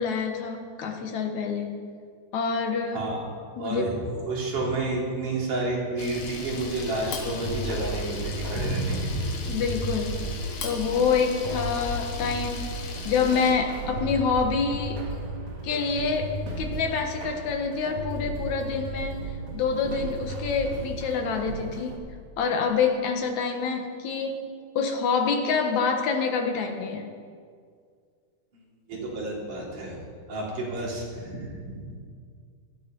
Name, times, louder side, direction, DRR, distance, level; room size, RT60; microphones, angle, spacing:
voice 1, 0.0-1.8 2.3-3.0 3.6-3.9 9.5-10.2 10.6-12.7 13.0-15.0 15.6-22.0 22.4-24.4 24.8-27.1, left 5 dB, 70° left, 4 dB, 2.6 m, -27 dB
voice 2, 2.9-3.3 3.6-9.5 28.5-30.0 30.3-32.0, right 2 dB, 80° right, -4 dB, 5.0 m, -30 dB
Camera, 6.0-13.5, left 4 dB, 85° left, 3.2 m, -37 dB
sound 1, 7.4-22.0, right 1 dB, 55° right, 3.5 m, -35 dB
17.5 x 13.0 x 5.4 m, 2.1 s
omnidirectional pair, 3.6 m